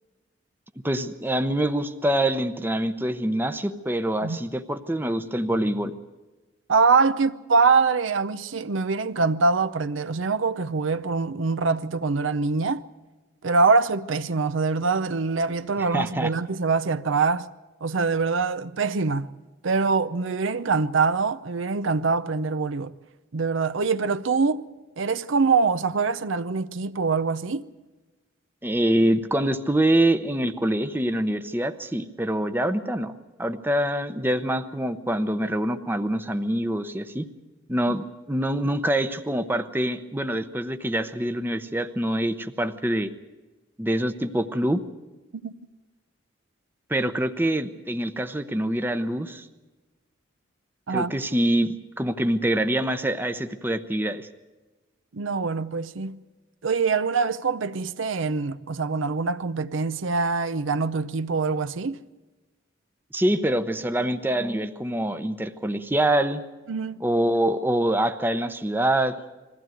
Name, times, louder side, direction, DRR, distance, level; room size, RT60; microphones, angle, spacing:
voice 1, 0.8-5.9 15.9-16.3 28.6-37.3 37.7-43.1 43.8-44.8 46.9-49.5 50.9-54.3 63.1-66.4 67.0-69.2, right 1 dB, 10° right, 0.7 m, -25 dB
voice 2, 6.7-12.8 13.4-17.5 17.8-19.3 19.6-22.9 23.3-24.6 25.0-27.6 45.4-45.5 50.9-51.1 55.1-56.2 56.6-62.0 66.7-67.0, right 4 dB, 75° right, 0.6 m, -24 dB
21.5 x 15.5 x 9.1 m
head